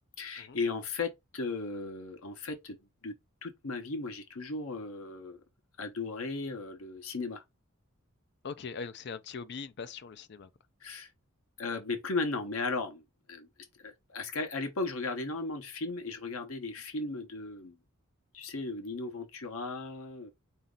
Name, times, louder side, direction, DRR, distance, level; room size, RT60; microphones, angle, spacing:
voice 1, 0.2-3.1 3.4-5.4 5.8-7.4 10.8-11.1 11.6-13.0 13.3-13.5 13.8-17.8 18.3-20.3, left 3 dB, 85° left, 1.0 m, -36 dB
voice 2, 8.4-10.5, left 5 dB, 55° left, 0.5 m, -41 dB
4.0 x 2.8 x 3.7 m
head